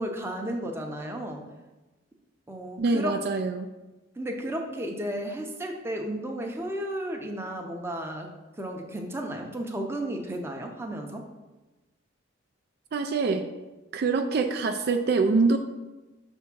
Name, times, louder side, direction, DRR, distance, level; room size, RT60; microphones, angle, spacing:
voice 1, 0.0-1.4 2.5-3.1 4.2-8.3 8.6-11.2, right 1 dB, 10° right, 2 dB, 0.6 m, -33 dB
voice 2, 2.8-3.7 12.9-13.5 13.9-15.6, right 4 dB, 50° right, 6 dB, 0.3 m, -24 dB
6.2 x 3.5 x 5.9 m, 1.1 s
head